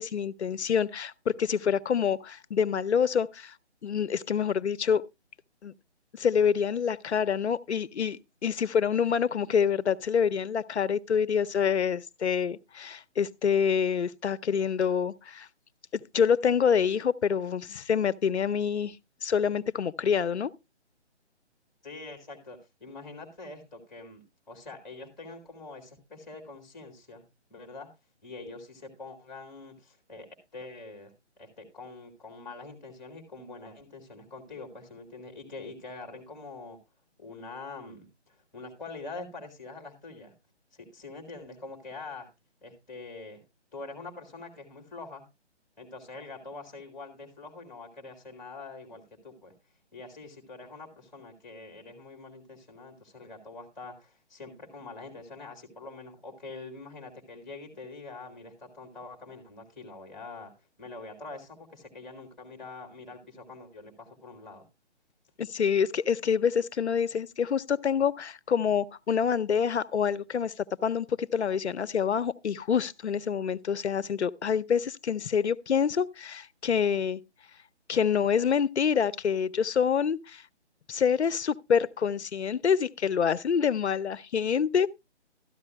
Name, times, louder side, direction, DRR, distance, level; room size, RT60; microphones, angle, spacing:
voice 1, 0.0-3.5 3.8-5.0 5.6-5.7 6.1-15.5 15.9-18.9 19.2-20.5 65.4-77.2 77.9-80.4 80.9-84.9, left 7 dB, 70° left, 0.7 m, -26 dB
voice 2, 21.8-27.2 27.5-27.9 28.2-30.3 30.5-31.1 31.4-36.8 37.2-40.3 40.7-42.3 42.6-43.4 43.7-45.2 45.8-49.5 49.9-60.5 60.8-64.7, left 3 dB, ahead, 1.8 m, -44 dB
13.5 x 10.5 x 2.2 m
hypercardioid pair, 165°, 35 cm